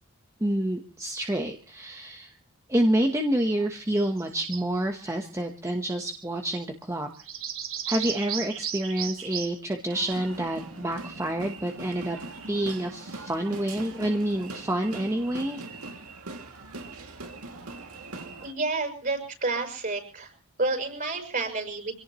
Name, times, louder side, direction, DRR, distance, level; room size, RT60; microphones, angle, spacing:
voice 1, 0.4-2.4 2.7-7.1 7.9-12.2 12.5-15.6, right 1 dB, 15° right, 3 dB, 1.1 m, -28 dB
sound 1, 4.2-4.6 5.7-6.2 7.1-9.5, right 9 dB, 65° right, 2.3 m, -34 dB
sound 2, 9.9-18.5, right 2 dB, 80° right, 2.5 m, -41 dB
voice 2, 18.4-20.3 20.6-21.9, right 3 dB, 40° right, 4 dB, 5.9 m, -29 dB
26.0 x 17.5 x 3.1 m, 0.37 s
head